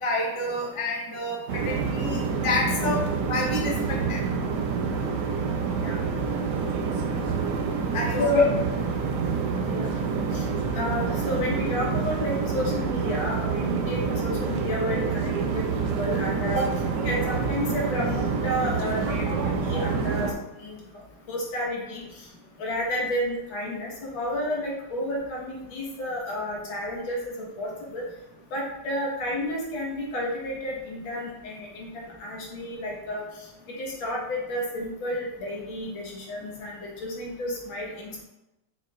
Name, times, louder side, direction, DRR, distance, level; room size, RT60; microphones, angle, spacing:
voice 1, 0.0-4.2 7.9-8.4, left 3 dB, 40° left, -1 dB, 0.4 m, -27 dB
sound 1, 1.5-20.3, right 5 dB, 70° right, 1.1 m, -27 dB
voice 2, 10.7-20.3 20.6-21.0 21.3-22.3 22.6-28.0 28.5-33.5 33.8-38.2, equal, 65° left, -3 dB, 2.1 m, -31 dB
6.4 x 6.1 x 2.5 m, 0.92 s
omnidirectional pair, 2.3 m